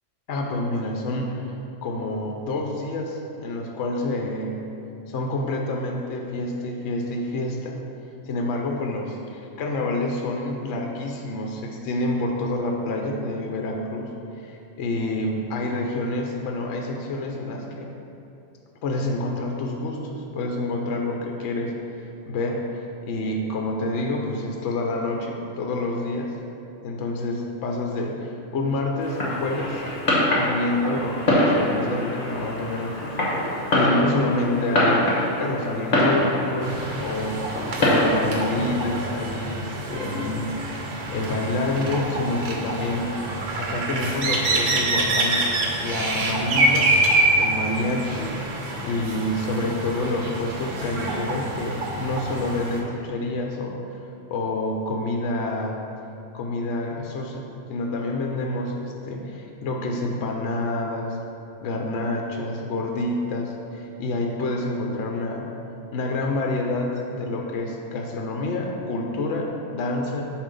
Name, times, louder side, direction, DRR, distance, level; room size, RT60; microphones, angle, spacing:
voice 1, 0.3-1.5 1.8-4.6 5.1-7.8 8.2-17.9 18.8-21.7 22.3-26.4 26.8-29.8 30.4-35.1 35.4-37.5 37.8-40.5 40.7-43.2 43.5-47.0 47.4-53.7 54.3-55.8 56.3-61.2 61.6-65.5 65.9-70.2, left 2 dB, 70° left, 1 dB, 0.9 m, -28 dB
Fireworks, 29.0-39.0, left 1 dB, 45° left, 1.1 m, -24 dB
sound 1, 36.6-52.8, right 2 dB, 90° right, 1.1 m, -26 dB
7.0 x 2.7 x 5.2 m, 2.8 s
omnidirectional pair, 1.3 m